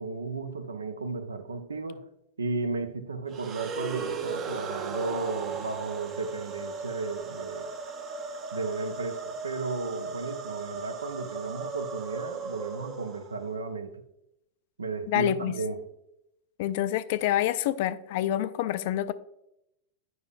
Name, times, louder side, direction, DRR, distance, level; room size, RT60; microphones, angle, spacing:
voice 1, 0.0-2.0 2.4-7.7 8.5-14.0 14.8-15.8, right 3 dB, 75° right, 0.6 m, -34 dB
sound 1, 3.3-13.5, right 4 dB, 30° right, 0.7 m, -37 dB
voice 2, 15.1-15.5 16.6-19.1, left 13 dB, 50° left, 0.3 m, -27 dB
9.4 x 5.5 x 2.4 m
figure-of-eight pair, 90°, 0 cm